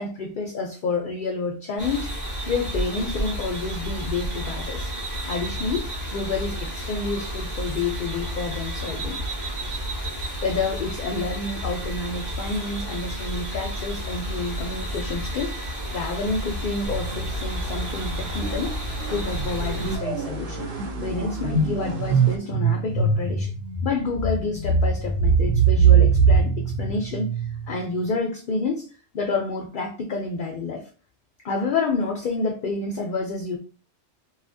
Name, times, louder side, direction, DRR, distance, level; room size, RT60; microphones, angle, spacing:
voice 1, 0.0-2.1 2.5-4.9 5.2-9.2 10.4-18.7 19.1-20.7 21.0-23.5 23.8-28.9 29.1-30.9 31.4-33.6, left 3 dB, 60° left, 2 dB, 0.5 m, -29 dB
sound 1, 1.8-20.0, equal, 15° right, 0.9 m, -31 dB
sound 2, 16.9-22.4, right 2 dB, 55° right, 0.7 m, -34 dB
sound 3, 18.4-18.7 19.0-27.8, right 5 dB, 85° right, 1.1 m, -22 dB
2.8 x 2.4 x 2.5 m, 0.36 s
omnidirectional pair, 1.2 m